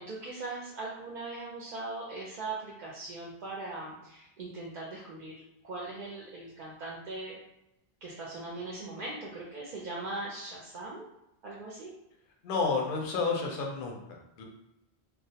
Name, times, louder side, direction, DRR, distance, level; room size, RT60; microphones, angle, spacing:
voice 1, 0.0-5.4 5.6-7.4 8.0-11.1 11.4-11.9, right 2 dB, 60° right, -5 dB, 0.6 m, -40 dB
voice 2, 12.4-14.4, left 4 dB, 65° left, 0 dB, 0.7 m, -31 dB
2.2 x 2.0 x 2.7 m, 0.84 s
omnidirectional pair, 1.0 m